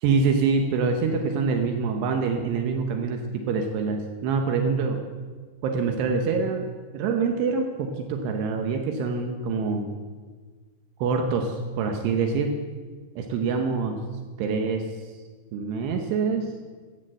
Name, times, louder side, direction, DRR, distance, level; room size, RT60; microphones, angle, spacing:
voice 1, 0.0-5.0 5.6-6.7 6.9-9.9 11.0-12.5 13.2-13.9 14.4-14.8 15.5-16.5, right 5 dB, 80° right, 4 dB, 3.0 m, -25 dB
14.0 x 8.8 x 7.6 m, 1.5 s
omnidirectional pair, 4.8 m